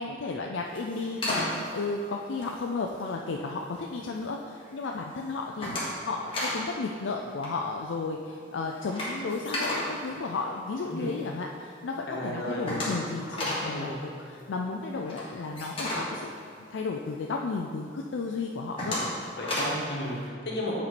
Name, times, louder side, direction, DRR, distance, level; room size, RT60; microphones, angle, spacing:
voice 1, 0.0-16.3 16.7-19.0, left 3 dB, 80° left, 1 dB, 0.4 m, -33 dB
sound 1, 0.6-3.2 3.6-4.2 4.5-4.9 5.2-6.7 6.9-7.1 7.3-11.1 11.5-11.6 11.9-12.0 12.2-17.2 17.6-17.7 18.2-19.9, left 1 dB, 30° left, 1.5 m, -33 dB
voice 2, 12.1-12.6 13.6-14.0 19.4-20.8, left 1 dB, 60° left, -3 dB, 1.4 m, -33 dB
8.7 x 4.4 x 4.2 m, 2.4 s
head